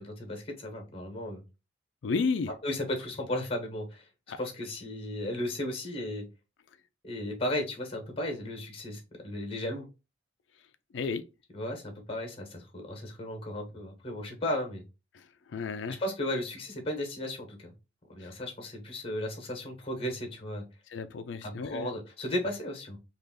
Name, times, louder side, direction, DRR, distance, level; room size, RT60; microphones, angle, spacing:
voice 1, 0.2-1.4 2.6-4.1 4.4-6.3 7.0-9.9 11.5-14.8 16.0-17.7 18.1-20.7 21.4-23.0, left 1 dB, 30° left, 1.1 m, -35 dB
voice 2, 2.0-2.5 4.3-4.4 10.9-11.2 15.5-16.0 20.9-21.9, left 4 dB, 75° left, 0.4 m, -32 dB
3.3 x 2.5 x 3.7 m
head